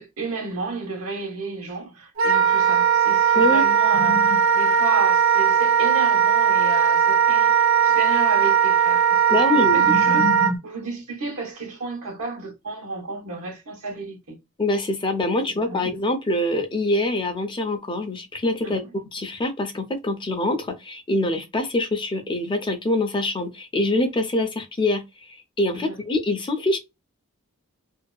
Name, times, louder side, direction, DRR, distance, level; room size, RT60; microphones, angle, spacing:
voice 1, 0.0-14.4 15.4-15.9 18.6-18.8 25.7-26.0, right 2 dB, 90° right, 1.0 m, -31 dB
Wind instrument woodwind instrument, 2.2-10.5, right 7 dB, 65° right, 0.6 m, -18 dB
voice 2, 3.3-3.6 9.3-9.9 14.6-18.8 19.1-25.0 25.3-26.8, left 1 dB, 25° left, 0.5 m, -24 dB
2.6 x 2.2 x 2.3 m
head